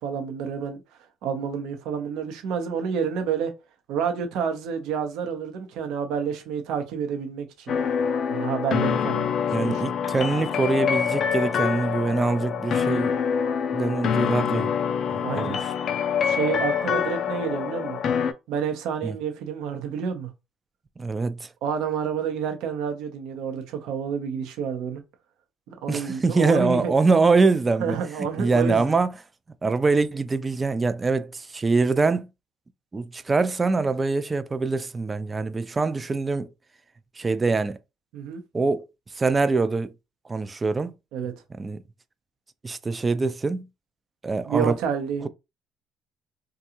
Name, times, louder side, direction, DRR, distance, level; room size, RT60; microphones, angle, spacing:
voice 1, 0.0-0.8 1.2-3.5 3.9-7.7 8.3-9.3 9.6-9.8 15.2-15.6 16.2-18.0 18.5-20.3 21.6-25.0 25.8-26.9 27.8-28.9 38.1-38.4 41.1-41.3 44.5-45.3, right 7 dB, 75° right, 0.7 m, -29 dB
sound 1, 7.7-18.3, left 7 dB, 60° left, 0.4 m, -25 dB
voice 2, 9.5-13.1 13.7-14.7 15.1-15.6 19.0-19.2 21.0-21.5 25.9-28.0 28.4-29.2 29.6-32.3 32.9-36.5 37.2-37.8 38.5-38.9 39.2-39.9 40.3-40.9 41.6-41.8 42.6-43.7 44.2-44.8, right 3 dB, 25° right, 0.4 m, -24 dB
2.5 x 2.3 x 2.8 m
supercardioid pair, 65°, 0 cm